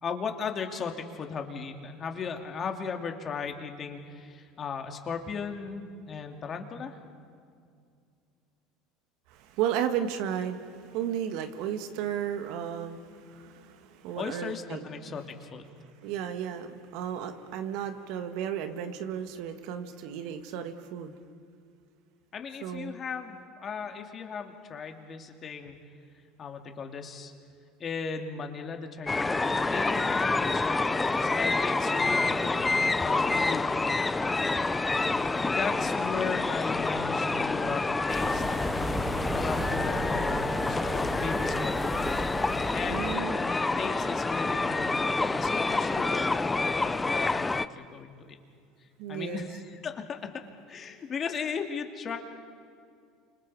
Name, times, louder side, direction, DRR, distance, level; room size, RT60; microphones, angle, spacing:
voice 1, 0.0-7.0 14.1-15.6 22.3-25.8 26.4-27.3 27.8-30.8 31.0-32.6 33.0-33.8 35.3-38.4 38.8-42.3 42.7-48.4 49.1-50.3 50.7-52.2, left 5 dB, 35° left, 4 dB, 2.6 m, -37 dB
voice 2, 9.3-15.2 16.0-21.1 22.6-23.0 42.9-43.5 49.0-49.5, right 9 dB, 65° right, 8 dB, 1.7 m, -34 dB
sound 1, 29.1-47.6, left 3 dB, 15° left, 0.8 m, -28 dB
sound 2, 38.1-43.2, right 1 dB, 15° right, 2.7 m, -35 dB
29.0 x 26.5 x 4.9 m, 2.3 s
hypercardioid pair, 85°, 0 cm